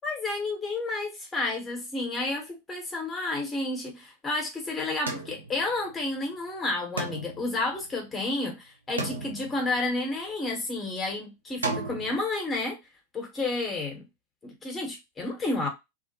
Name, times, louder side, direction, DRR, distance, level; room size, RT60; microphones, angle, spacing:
voice 1, 0.0-12.8 13.1-14.0 14.4-15.7, left 2 dB, 20° left, 0.9 m, -31 dB
sound 1, 5.1-6.2 7.0-8.4 9.0-10.3 11.6-12.2, right 2 dB, 75° right, 0.5 m, -35 dB
2.4 x 2.0 x 2.8 m
figure-of-eight pair, 90°, 0 cm